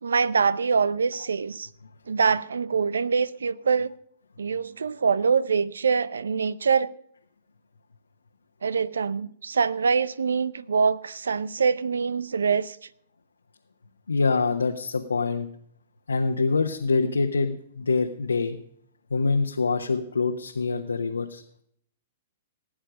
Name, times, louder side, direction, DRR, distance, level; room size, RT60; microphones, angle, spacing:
voice 1, 0.0-1.7 2.1-3.9 4.4-6.9 8.6-12.8, right 5 dB, 75° right, 0.7 m, -24 dB
voice 2, 14.1-15.5 16.1-18.6 19.1-21.6, left 4 dB, 80° left, 1.1 m, -25 dB
18.0 x 8.9 x 5.1 m
figure-of-eight pair, 110°, 0 cm